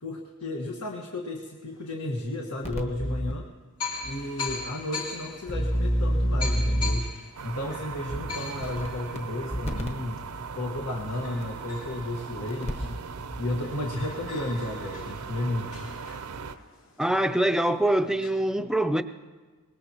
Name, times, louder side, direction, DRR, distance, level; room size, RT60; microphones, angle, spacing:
voice 1, 0.0-3.4 4.0-7.1 7.4-10.2 10.6-13.1 13.4-15.9, left 1 dB, 85° left, 1.4 m, -33 dB
sound 1, 2.1-2.2 3.0-3.1 3.8-13.0 13.3-13.4 13.6-18.3, left 4 dB, 70° left, 2.5 m, -41 dB
sound 2, 2.6-3.3 4.0-4.1 4.5-4.6 5.5-7.2 8.1-8.2 8.6-9.2 9.5-9.9 11.4-11.5 12.5-13.0 13.3-13.4, equal, 30° left, 1.1 m, -27 dB
sound 3, 7.4-16.6, right 5 dB, 75° right, 0.6 m, -39 dB
voice 2, 17.0-19.0, right 1 dB, 5° right, 0.4 m, -24 dB
24.0 x 20.0 x 2.9 m
head